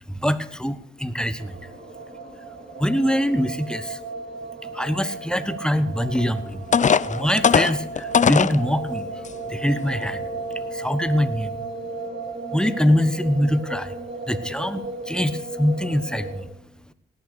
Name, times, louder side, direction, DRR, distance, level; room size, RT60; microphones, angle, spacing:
voice 1, 0.1-1.7 2.8-4.0 4.7-6.6 7.1-9.1 9.5-10.3 10.7-11.6 12.5-14.0 14.3-16.5, equal, 5° left, 13 dB, 1.2 m, -24 dB
sound 1, 1.4-16.4, right 3 dB, 60° right, 4.0 m, -35 dB
sound 2, 6.1-6.2 6.7-8.6 9.2-9.3 9.9-10.1, left 6 dB, 40° left, 0.5 m, -19 dB
18.0 x 6.8 x 6.7 m, 0.70 s
cardioid pair, 50°, 20 cm